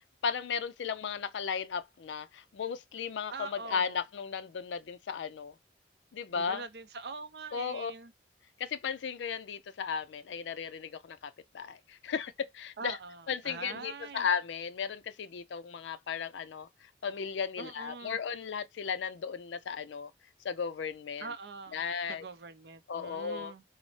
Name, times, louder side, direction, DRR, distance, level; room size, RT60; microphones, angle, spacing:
voice 1, 0.2-5.5 6.1-6.6 7.5-7.9 8.6-13.0 13.3-20.1 20.4-21.3 21.7-22.2 22.9-23.5, left 6 dB, 85° left, 0.4 m, -35 dB
voice 2, 3.3-4.0 6.4-8.1 12.8-14.3 17.6-18.2 21.2-23.6, right 4 dB, 65° right, 0.5 m, -44 dB
4.0 x 2.0 x 3.1 m
head